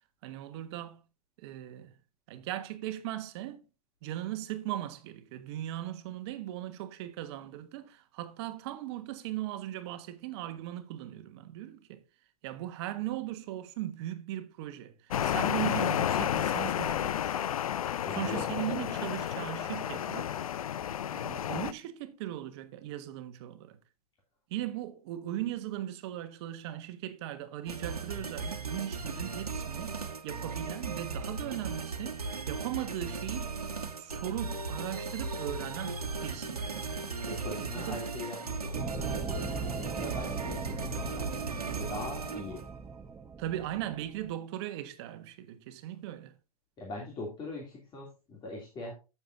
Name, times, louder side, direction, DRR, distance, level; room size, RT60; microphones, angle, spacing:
voice 1, 0.2-1.0 1.4-1.9 2.3-3.6 4.0-12.0 12.4-17.4 18.2-20.4 21.1-23.8 24.5-33.5 34.0-37.0 37.6-38.1 43.4-46.3, right 13 dB, 45° right, 1.4 m, -38 dB
sound 1, 15.1-21.7, left 10 dB, 70° left, 0.5 m, -31 dB
voice 2, 18.0-18.5 37.2-41.3 41.7-42.6 46.8-48.9, left 2 dB, 25° left, 2.8 m, -42 dB
sound 2, 27.7-42.7, right 4 dB, 90° right, 1.5 m, -37 dB
sound 3, 38.7-44.3, right 5 dB, 15° right, 0.7 m, -40 dB
14.0 x 7.1 x 2.6 m
hypercardioid pair, 115°, 19 cm